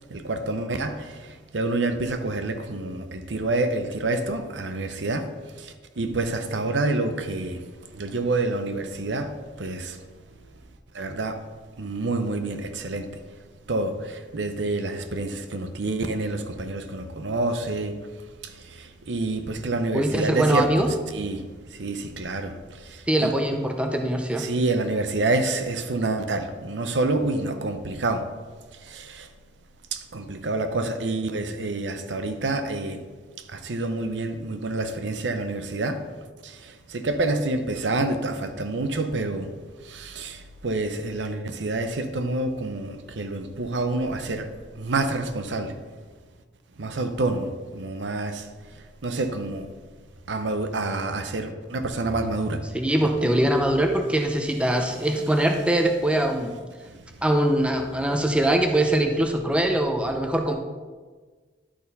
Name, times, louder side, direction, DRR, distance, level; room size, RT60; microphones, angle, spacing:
voice 1, 0.1-10.1 10.9-11.5 11.8-13.2 13.7-18.1 18.4-20.7 21.1-23.3 24.3-28.3 28.7-29.3 29.9-33.0 33.5-36.1 36.4-45.8 46.8-49.7 50.3-52.8 56.8-57.0, right 2 dB, 80° right, 0.7 m, -28 dB
voice 2, 19.9-20.9 23.1-24.5 52.7-56.6 57.2-60.6, right 1 dB, 5° right, 0.6 m, -22 dB
11.0 x 4.3 x 5.4 m
head